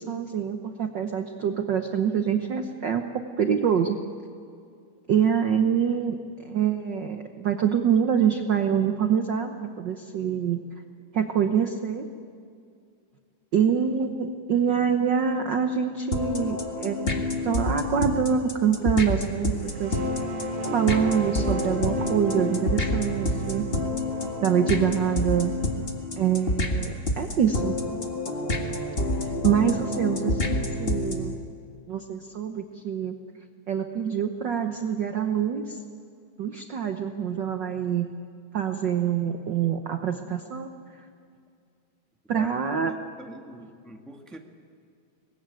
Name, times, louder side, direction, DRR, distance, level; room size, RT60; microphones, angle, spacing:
voice 1, 0.0-3.0 3.4-4.0 5.1-6.2 6.4-10.6 11.1-12.1 13.5-20.0 20.7-23.7 24.4-25.5 26.2-27.8 29.2-31.4 31.9-33.2 33.7-35.8 36.4-38.1 38.5-40.7 42.3-42.9, right 8 dB, 75° right, 5 dB, 1.0 m, -25 dB
sound 1, 16.1-31.3, left 2 dB, 25° left, 1.5 m, -28 dB
sound 2, 19.4-28.8, right 6 dB, 55° right, 2.1 m, -38 dB
voice 2, 42.3-44.4, right 1 dB, ahead, 2 dB, 1.0 m, -45 dB
24.0 x 20.5 x 9.3 m, 2.4 s
omnidirectional pair, 3.5 m